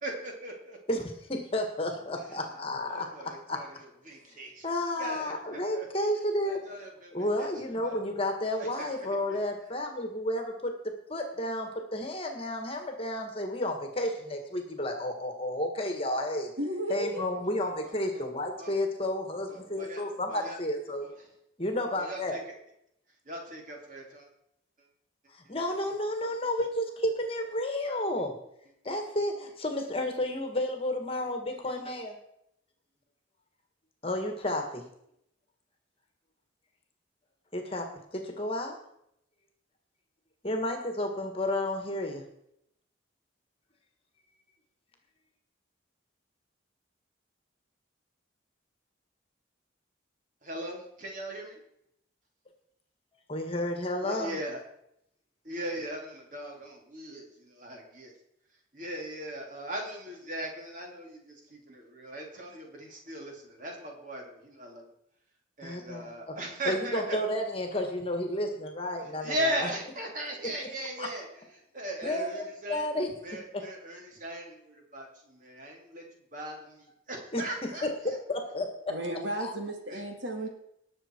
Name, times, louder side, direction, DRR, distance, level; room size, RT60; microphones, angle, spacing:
voice 1, 0.0-0.8 2.3-2.4 2.9-3.7 4.1-4.7 5.0-5.9 6.5-7.5 7.8-8.0 8.6-8.9 9.3-9.4 17.8-18.3 18.6-18.8 19.5-20.0 20.3-20.6 21.0-21.1 22.0-22.4 23.3-24.3 50.4-51.6 54.0-54.6 55.4-58.1 58.7-64.8 65.6-67.2 69.2-71.3 71.7-72.9 73.2-76.0 76.3-78.2 79.9-80.0, right 1 dB, 40° right, 0 dB, 2.7 m, -38 dB
voice 2, 0.9-3.6 4.6-6.6 7.1-16.5 16.9-21.1 21.6-22.4 25.3-28.3 28.9-32.2 34.0-34.8 37.5-38.8 40.4-42.2 53.3-54.4 65.6-66.1 66.6-69.7 70.4-70.5 71.0-71.1 72.0-73.1 73.5-73.7 77.3-78.7 79.4-79.5, left 1 dB, 30° left, 4 dB, 1.7 m, -32 dB
voice 3, 16.6-17.3 78.9-80.5, right 1 dB, 70° right, 3 dB, 2.0 m, -34 dB
19.5 x 6.8 x 4.5 m, 0.76 s
head